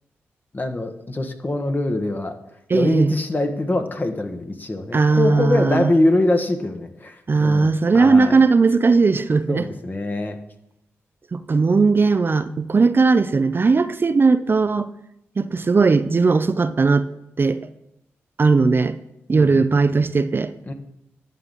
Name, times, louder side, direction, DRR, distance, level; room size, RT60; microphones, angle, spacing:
voice 1, 0.5-2.3 2.7-8.4 9.5-10.4 19.3-19.6 20.7-20.8, left 2 dB, 35° left, 6 dB, 1.3 m, -23 dB
voice 2, 2.7-3.1 4.9-5.9 7.3-9.7 11.3-14.9 15.4-17.0 17.4-17.6 18.4-19.0 19.3-20.5, right 4 dB, 40° right, 11 dB, 0.5 m, -18 dB
11.0 x 3.9 x 7.5 m, 0.82 s
supercardioid pair, 40°, 5 cm